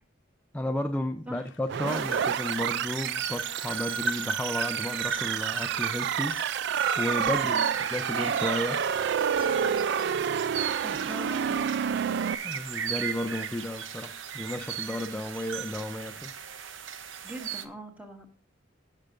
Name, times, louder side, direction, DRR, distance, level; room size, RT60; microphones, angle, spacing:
voice 1, 0.5-7.6 7.9-9.1 12.4-16.3, left 1 dB, 10° left, 0.5 m, -33 dB
sound 1, 1.3-15.3, left 5 dB, 75° left, 0.9 m, -53 dB
sound 2, 1.7-12.3, right 8 dB, 60° right, 0.3 m, -29 dB
sound 3, 1.9-17.7, right 7 dB, 90° right, 0.8 m, -35 dB
voice 2, 10.8-11.6 17.2-18.3, right 1 dB, 5° right, 1.5 m, -41 dB
15.0 x 6.5 x 2.5 m
head